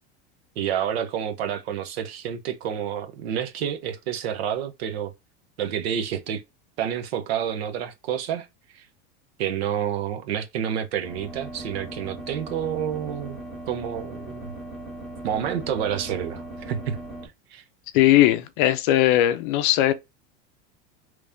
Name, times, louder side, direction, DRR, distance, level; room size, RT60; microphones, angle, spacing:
voice 1, 0.6-5.1 5.6-6.4 6.8-8.5 8.7-8.9 9.4-13.4 13.7-14.5 15.2-17.6, right 9 dB, 80° right, 0.8 m, -29 dB
sound 1, 11.0-17.3, right 1 dB, ahead, 1.4 m, -38 dB
voice 2, 17.9-19.9, left 14 dB, 55° left, 0.5 m, -19 dB
3.4 x 3.2 x 2.6 m
supercardioid pair, 160°, 31 cm